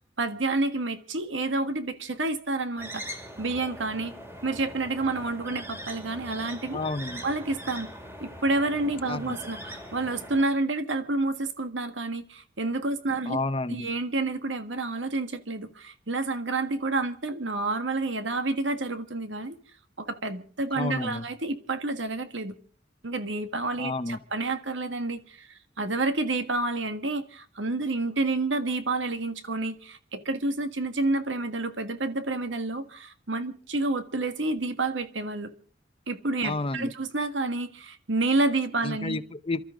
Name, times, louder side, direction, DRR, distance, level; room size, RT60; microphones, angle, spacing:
voice 1, 0.2-4.1 4.4-6.8 7.2-7.9 8.2-13.4 13.7-19.5 20.0-22.5 23.0-35.5 36.1-39.2, right 2 dB, 90° right, 1.6 m, -29 dB
sound 1, 2.8-10.4, equal, 15° right, 2.4 m, -41 dB
voice 2, 6.7-7.2 9.1-9.4 13.3-13.9 20.8-21.3 23.8-24.2 36.4-36.9 38.8-39.6, left 2 dB, 30° left, 0.7 m, -31 dB
28.5 x 13.0 x 3.8 m
head